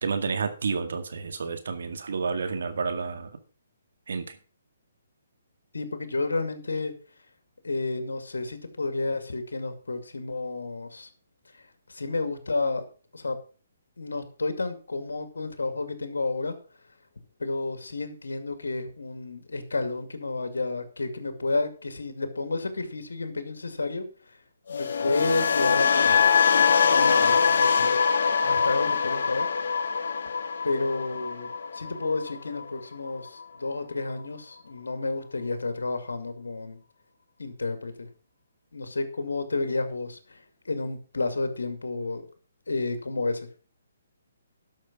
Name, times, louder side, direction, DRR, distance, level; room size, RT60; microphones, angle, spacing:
voice 1, 0.0-3.3 4.1-4.4, right 5 dB, 70° right, 9 dB, 2.1 m, -30 dB
voice 2, 5.7-6.9 7.6-11.1 11.9-12.9 13.1-13.4 14.0-16.6 17.4-24.4 24.7-26.3 26.9-28.0 28.4-29.5 30.6-36.8 37.4-38.1 38.7-42.3 42.7-43.5, left 3 dB, 90° left, 9 dB, 2.2 m, -31 dB
sound 1, 24.7-32.8 33.1-33.4, left 6 dB, 70° left, 1.0 m, -23 dB
12.0 x 6.4 x 6.0 m, 0.37 s
hypercardioid pair, 145°, 0 cm